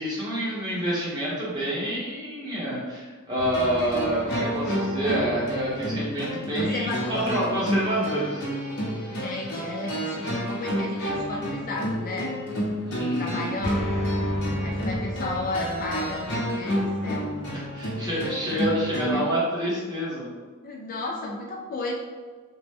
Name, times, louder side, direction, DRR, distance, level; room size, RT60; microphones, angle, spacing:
voice 1, 0.0-8.4 12.8-13.4 17.5-20.3, right 1 dB, 20° right, -8 dB, 1.1 m, -28 dB
sound 1, 3.4-19.1, equal, 60° left, 0.8 m, -29 dB
voice 2, 6.6-7.3 9.1-12.3 13.2-14.0 14.6-16.8 17.0-17.3 18.0-18.2 19.1-19.3 20.6-21.9, left 2 dB, 40° left, 0 dB, 0.3 m, -33 dB
2.9 x 2.2 x 3.4 m, 1.4 s
head